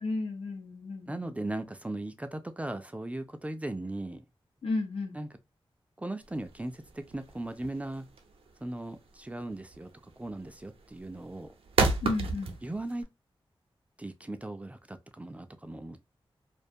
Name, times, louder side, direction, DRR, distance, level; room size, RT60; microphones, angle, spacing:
voice 1, 0.0-1.4 4.6-5.2 12.0-12.5, left 3 dB, 90° left, 0.6 m, -33 dB
voice 2, 1.1-4.2 5.1-5.3 6.0-8.1 8.6-11.5 12.6-13.1 14.0-16.0, right 1 dB, 15° right, 0.3 m, -38 dB
sound 1, 6.2-13.0, right 3 dB, 85° right, 0.5 m, -32 dB
2.4 x 2.2 x 2.6 m
wide cardioid pair, 95°, 9 cm